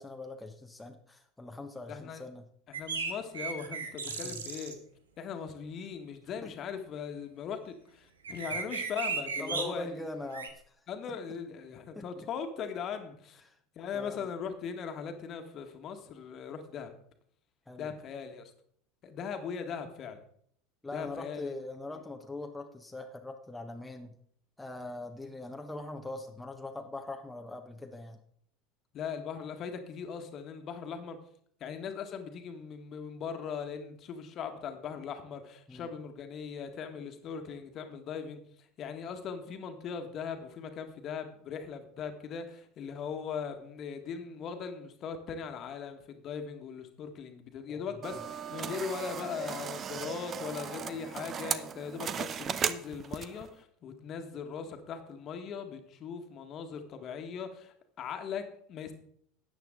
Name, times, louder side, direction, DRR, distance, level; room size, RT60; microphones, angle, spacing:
voice 1, 0.0-2.5 4.1-4.4 6.4-6.5 8.5-8.6 9.4-10.7 11.1-11.2 11.9-12.3 13.4-13.6 13.9-14.3 17.7-17.9 20.8-24.1 24.6-28.2 35.7-35.9 47.7-47.8 48.1-48.2, left 2 dB, 10° left, 3 dB, 1.1 m, -42 dB
voice 2, 1.9-2.2 2.7-4.8 5.2-9.9 10.9-13.4 13.8-16.9 17.8-18.5 19.0-20.2 20.9-21.5 28.9-31.2 31.6-58.9, left 6 dB, 40° left, 6 dB, 1.7 m, -39 dB
sound 1, 2.7-4.7 8.2-9.7 10.3-10.5, right 5 dB, 80° right, 1.3 m, -35 dB
sound 2, 48.0-53.5, right 7 dB, 35° right, 0.7 m, -36 dB
13.0 x 9.0 x 3.8 m, 0.63 s
figure-of-eight pair, 75°, 0 cm